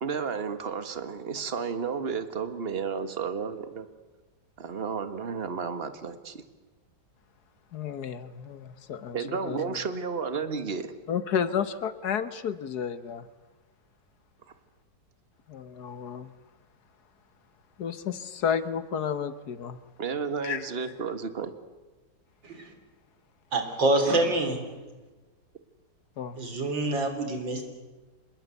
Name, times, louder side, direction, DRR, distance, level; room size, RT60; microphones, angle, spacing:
voice 1, 0.0-3.9 4.6-6.4 9.1-10.9 20.0-21.5, right 5 dB, 35° right, 10 dB, 1.7 m, -32 dB
voice 2, 7.7-9.8 11.1-13.3 15.5-16.3 17.8-19.8 20.4-20.7 26.2-26.4, left 7 dB, 60° left, 13 dB, 1.6 m, -32 dB
voice 3, 23.5-24.6 26.4-27.6, right 2 dB, 90° right, 7 dB, 4.2 m, -26 dB
26.0 x 21.5 x 8.2 m, 1.2 s
omnidirectional pair, 2.0 m